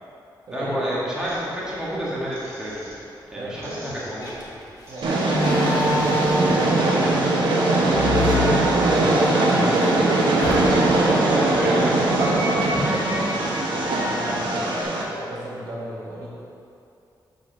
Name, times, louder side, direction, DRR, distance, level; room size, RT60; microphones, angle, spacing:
voice 1, 0.5-2.8 3.3-4.6 11.3-11.9 12.7-12.8, equal, 10° right, -8 dB, 1.6 m, -29 dB
sound 1, 1.2-3.2 3.5-7.2 7.5-14.8, equal, 35° right, 1.5 m, -35 dB
voice 2, 3.3-3.8 4.9-10.5 10.9-11.7 12.4-16.3, right 1 dB, 60° right, -6 dB, 1.8 m, -34 dB
Slam, 4.2-4.4 5.3-6.9 7.9-9.3 9.7-9.8 10.4-11.0, left 2 dB, 50° left, 1.2 m, -25 dB
Train, 5.0-15.0, right 2 dB, 85° right, 1.2 m, -21 dB
6.9 x 5.2 x 5.3 m, 2.7 s
wide cardioid pair, 140°, 8 cm